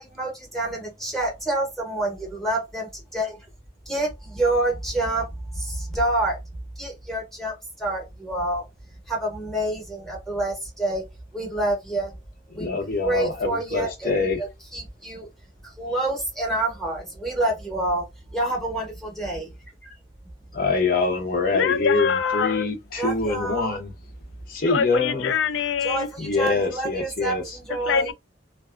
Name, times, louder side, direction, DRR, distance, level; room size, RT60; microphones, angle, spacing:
voice 1, 0.0-3.3 3.9-6.4 6.8-8.7 9.1-11.1 11.3-12.1 12.5-12.7 13.0-15.3 15.6-19.4 23.0-23.8 25.8-28.1, right 2 dB, ahead, 0.9 m, -28 dB
voice 2, 12.5-14.4 20.5-23.9 24.5-25.3 26.2-27.6, left 3 dB, 50° left, 0.7 m, -25 dB
voice 3, 21.5-22.7 24.7-26.1 27.8-28.1, left 7 dB, 75° left, 0.4 m, -24 dB
2.6 x 2.3 x 2.3 m
head